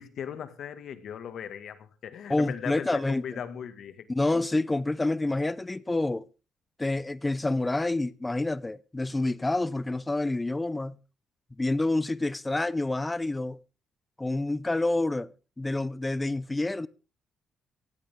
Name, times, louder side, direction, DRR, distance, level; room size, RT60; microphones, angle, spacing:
voice 1, 0.0-4.1, left 8 dB, 65° left, 1.9 m, -38 dB
voice 2, 2.3-3.4 4.1-6.3 6.8-11.0 11.6-13.6 14.2-15.3 15.6-16.9, left 2 dB, 15° left, 0.7 m, -28 dB
16.0 x 16.0 x 3.7 m
cardioid pair, 90°, 0 cm